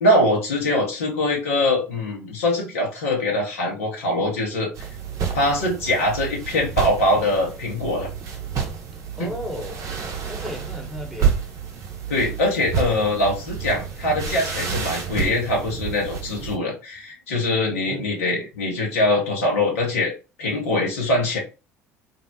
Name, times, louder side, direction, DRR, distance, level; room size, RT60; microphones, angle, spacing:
voice 1, 0.0-4.7 5.3-8.1 9.2-9.3 12.1-20.1 20.4-21.4, left 1 dB, 75° left, 0.8 m, -23 dB
sound 1, 4.7-16.6, right 7 dB, 50° right, 0.6 m, -29 dB
voice 2, 9.2-9.9 10.3-11.4 17.9-18.1, equal, ahead, 1.0 m, -34 dB
2.5 x 2.0 x 2.6 m
figure-of-eight pair, 60°, 7 cm